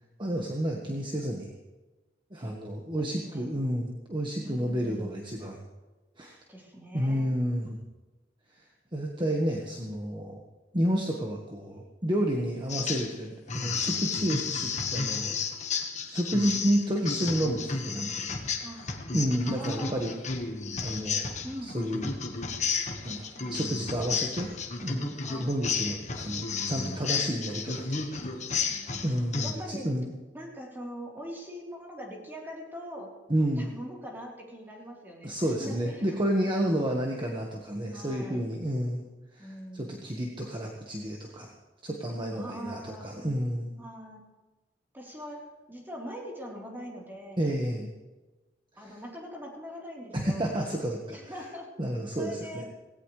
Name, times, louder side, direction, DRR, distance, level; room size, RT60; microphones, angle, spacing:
voice 1, 0.2-1.5 2.3-5.6 6.2-6.4 6.9-7.8 8.9-10.4 10.7-15.4 16.0-18.3 19.1-20.1 20.8-21.3 21.6-22.1 23.0-24.5 24.8-25.1 25.4-28.2 28.6-28.7 29.0-30.1 33.3-33.7 35.2-39.0 39.3-41.5 41.8-43.7 47.4-47.9 50.1-51.3 51.8-52.6, equal, 25° right, 0 dB, 1.5 m, -30 dB
voice 2, 4.4-5.2 6.5-7.3 18.6-18.9 19.5-20.0 21.4-21.7 23.4-23.8 25.3-25.5 28.7-29.1 29.4-29.9 30.3-33.1 33.6-36.2 36.5-37.0 37.9-38.5 39.4-40.1 42.3-43.1 43.8-44.2 44.9-45.4 45.7-47.6 48.8-50.5 51.1-51.7 52.2-52.6, equal, 10° right, -2 dB, 3.8 m, -42 dB
sound 1, 12.7-13.2 13.5-29.5, left 5 dB, 40° left, 1.5 m, -32 dB
18.0 x 17.5 x 3.3 m, 1.2 s
head